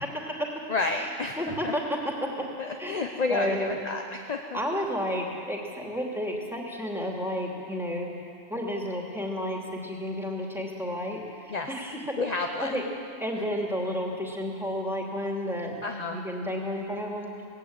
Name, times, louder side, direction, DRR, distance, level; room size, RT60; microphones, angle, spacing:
voice 1, 0.1-0.7 0.9-2.3 2.8-3.0 3.3-3.7 4.5-8.1 8.5-12.0 12.6-12.8 13.2-15.8 16.1-17.3, equal, ahead, -1 dB, 2.7 m, -31 dB
voice 2, 0.7-1.4 1.6-1.7 2.6-4.6 11.5-11.7 12.2-12.8 15.8-16.2, left 3 dB, 35° left, 3 dB, 0.9 m, -30 dB
19.5 x 16.5 x 8.8 m, 2.5 s
omnidirectional pair, 1.5 m